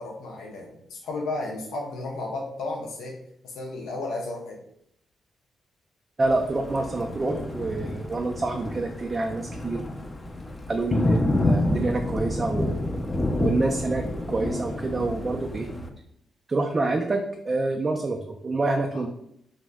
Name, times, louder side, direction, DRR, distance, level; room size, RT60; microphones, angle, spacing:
voice 1, 0.0-3.1 3.4-4.6 18.9-19.0, left 2 dB, 80° left, -1 dB, 0.5 m, -33 dB
Thunder, 6.2-15.9, left 1 dB, 30° left, 0.5 m, -29 dB
voice 2, 6.2-9.8 10.7-12.7 13.4-15.7 16.5-19.1, right 2 dB, 35° right, 3 dB, 0.3 m, -27 dB
2.7 x 2.0 x 3.4 m, 0.74 s
supercardioid pair, 50°, 0 cm